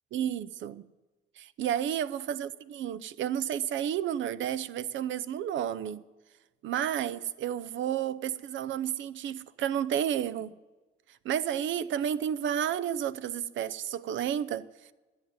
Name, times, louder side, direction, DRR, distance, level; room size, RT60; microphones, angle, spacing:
voice 1, 0.1-0.9 1.4-6.0 6.6-10.6 11.2-14.7, right 10 dB, 75° right, 0.7 m, -31 dB
11.0 x 9.4 x 9.4 m
cardioid pair, 90°, 20 cm